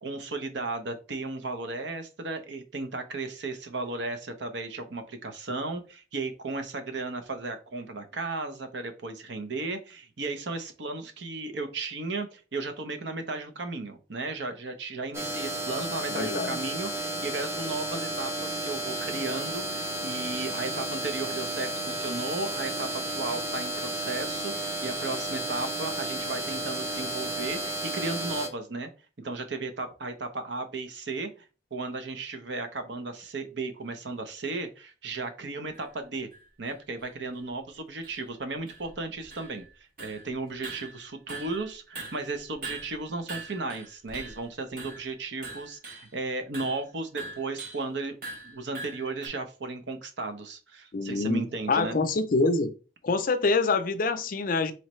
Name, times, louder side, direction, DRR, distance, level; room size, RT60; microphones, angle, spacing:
voice 1, 0.0-28.9 29.2-31.3 31.7-36.3 36.6-39.6 40.0-48.1 48.4-52.0, right 3 dB, 65° right, 0.8 m, -35 dB
sound 1, 15.1-28.5, right 1 dB, 15° right, 0.6 m, -33 dB
voice 2, 16.1-16.6 50.9-51.4 51.7-52.7 53.0-54.7, left 3 dB, 45° left, 0.5 m, -25 dB
sound 2, 35.7-35.8 36.3-36.4 37.0-37.1 37.3-37.4 38.0-38.3 38.7-39.7 40.0-40.3 40.6-41.7 42.0-44.5 44.8-45.1 45.4-46.1 46.5-46.8 47.2-47.9 48.2-49.3, right 3 dB, 50° right, 1.1 m, -42 dB
4.1 x 3.2 x 3.1 m
head